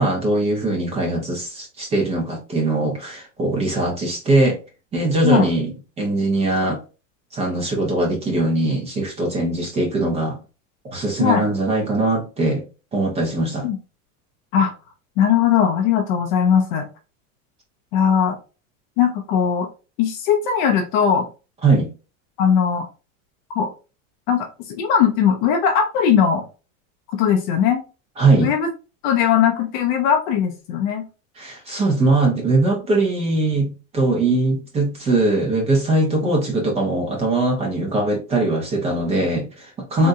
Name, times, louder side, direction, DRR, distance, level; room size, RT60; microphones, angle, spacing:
voice 1, 0.0-4.6 4.9-5.7 6.0-6.8 7.3-10.4 10.8-12.6 12.9-13.7 21.6-21.9 28.2-28.5 31.4-40.1, right 2 dB, 15° right, 0 dB, 0.5 m, -21 dB
voice 2, 15.2-16.9 17.9-18.4 19.0-19.7 20.0-21.3 22.4-22.9 23.6-23.7 24.3-26.4 27.1-27.8 28.4-28.7 29.0-31.0 36.2-36.3 40.0-40.1, left 8 dB, 40° left, 4 dB, 0.4 m, -19 dB
3.6 x 2.1 x 2.6 m, 0.32 s
supercardioid pair, 165°, 40 cm